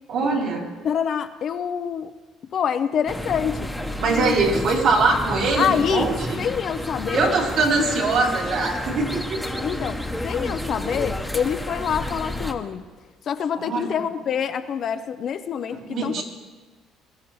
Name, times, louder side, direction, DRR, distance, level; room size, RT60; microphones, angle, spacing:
voice 1, 0.1-0.7 4.0-6.4 7.1-9.6 13.6-14.0 15.7-16.2, right 3 dB, 60° right, -2 dB, 3.3 m, -22 dB
voice 2, 0.8-2.1 2.5-3.7 4.1-4.3 5.6-6.1 6.4-7.3 9.6-12.8 13.3-16.2, left 8 dB, 45° left, 9 dB, 0.6 m, -26 dB
sound 1, 3.1-12.5, left 1 dB, ahead, 1.0 m, -31 dB
22.0 x 13.5 x 3.1 m, 1.3 s
cardioid pair, 135°, 0 cm